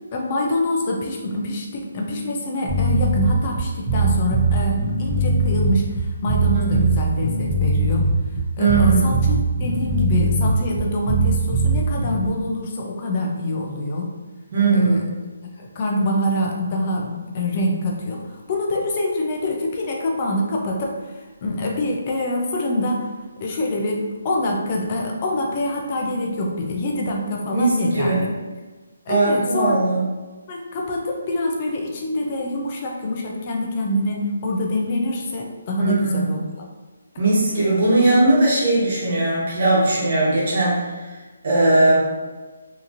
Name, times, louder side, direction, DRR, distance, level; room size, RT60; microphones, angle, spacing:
voice 1, 0.1-8.0 8.6-14.1 14.7-15.0 15.6-23.1 23.4-28.3 29.1-29.8 30.5-36.6, left 1 dB, 30° left, -1 dB, 0.5 m, -25 dB
sound 1, 2.7-12.3, right 2 dB, 10° right, 0.8 m, -20 dB
voice 2, 8.6-9.1 14.5-15.1 27.5-28.2 29.1-30.0 35.8-36.3 37.2-40.8 41.4-42.1, right 2 dB, 50° right, -7 dB, 1.1 m, -19 dB
2.9 x 2.5 x 2.5 m, 1.3 s
hypercardioid pair, 165°, 0 cm